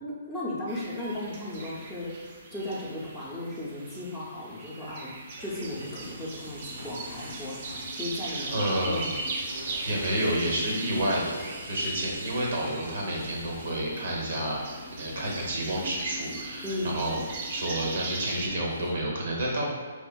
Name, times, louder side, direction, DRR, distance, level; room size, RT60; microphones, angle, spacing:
voice 1, 0.0-5.1 5.4-8.6 8.9-9.1 16.6-16.9, left 1 dB, 5° right, -11 dB, 0.6 m, -36 dB
sound 1, 0.7-18.5, right 3 dB, 45° right, 0.5 m, -40 dB
sound 2, 5.4-18.9, right 1 dB, 85° right, 1.2 m, -46 dB
sound 3, 6.4-18.2, left 1 dB, 35° left, 0.5 m, -48 dB
voice 2, 8.1-9.1 9.8-11.4 11.6-14.6 15.0-17.2 17.5-19.6, right 1 dB, 65° right, -2 dB, 0.9 m, -29 dB
4.2 x 2.4 x 2.3 m, 1.4 s
hypercardioid pair, 145°, 0 cm